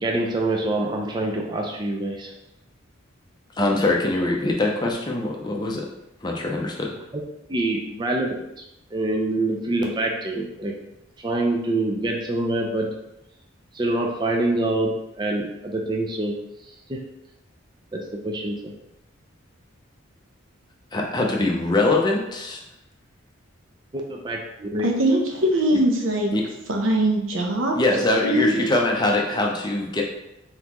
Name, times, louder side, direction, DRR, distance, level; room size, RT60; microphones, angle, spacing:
voice 1, 0.0-2.3 7.5-8.4 8.9-10.7 11.2-12.9 13.7-16.4 16.9-17.0 17.9-18.7 23.9-24.9, right 2 dB, 20° right, 0 dB, 0.4 m, -25 dB
voice 2, 3.6-5.9 6.2-7.0 20.9-22.6 26.3-26.4 27.8-30.0, left 2 dB, 20° left, -1 dB, 0.6 m, -23 dB
voice 3, 24.8-26.3 26.7-27.8 28.2-28.7, right 1 dB, 75° right, 2 dB, 0.8 m, -21 dB
4.0 x 3.9 x 3.0 m, 0.87 s
head